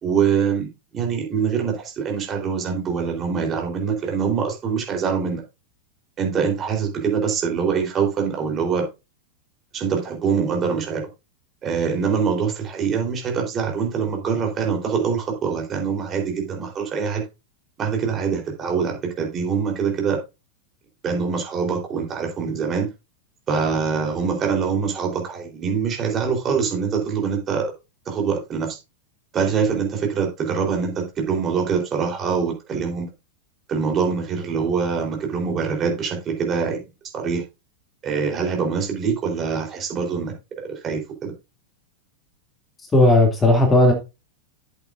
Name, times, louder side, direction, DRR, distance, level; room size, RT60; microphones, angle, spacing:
voice 1, 0.0-5.4 6.2-8.9 9.7-11.0 11.6-17.3 17.8-20.2 21.0-22.9 23.5-27.7 28.1-28.8 29.3-33.1 33.7-36.8 37.1-37.4 38.0-40.3 40.7-41.3, right 6 dB, 25° right, 3.9 m, -24 dB
voice 2, 42.9-43.9, left 2 dB, 15° left, 2.7 m, -15 dB
12.0 x 8.2 x 2.6 m
figure-of-eight pair, 90°, 0 cm